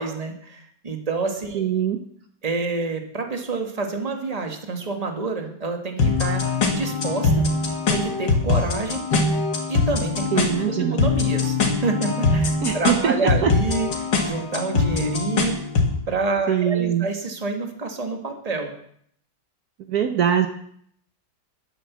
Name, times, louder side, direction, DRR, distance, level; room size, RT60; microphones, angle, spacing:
voice 1, 0.0-1.7 2.4-7.3 7.9-9.0 9.7-10.3 10.6-15.6 16.1-18.7, right 3 dB, 20° right, 4 dB, 1.6 m, -28 dB
voice 2, 1.5-2.0 10.3-11.0 12.6-13.5 16.5-17.1 19.9-20.5, right 9 dB, 65° right, 7 dB, 1.3 m, -22 dB
sound 1, 6.0-16.0, left 4 dB, 80° left, 2.6 m, -22 dB
11.0 x 10.0 x 7.3 m, 0.67 s
omnidirectional pair, 1.9 m